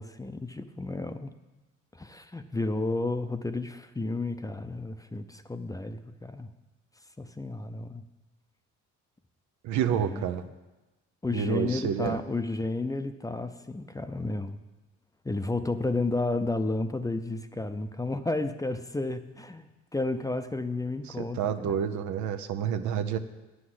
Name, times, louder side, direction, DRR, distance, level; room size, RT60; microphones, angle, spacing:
voice 1, 0.0-1.3 1.9-6.5 7.2-8.0 9.9-10.2 11.2-14.6 15.2-21.7, left 2 dB, 10° left, 9 dB, 0.6 m, -32 dB
voice 2, 9.6-10.4 11.3-12.2 21.1-23.2, right 8 dB, 80° right, 9 dB, 0.8 m, -29 dB
sound 1, 11.9-12.5, right 4 dB, 30° right, 1.1 m, -37 dB
9.8 x 6.3 x 7.8 m, 1.1 s
cardioid pair, 95°, 29 cm